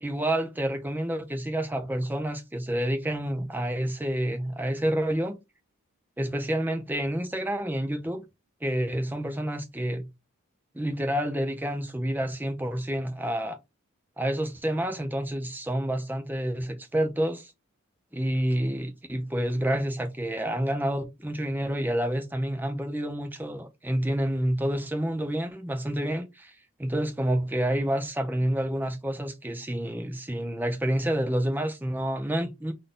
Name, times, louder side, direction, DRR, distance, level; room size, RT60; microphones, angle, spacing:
voice 1, 0.0-5.4 6.2-8.2 8.6-10.1 10.7-13.6 14.2-17.5 18.1-32.7, right 1 dB, 10° right, 0.5 m, -29 dB
3.9 x 2.6 x 3.6 m
head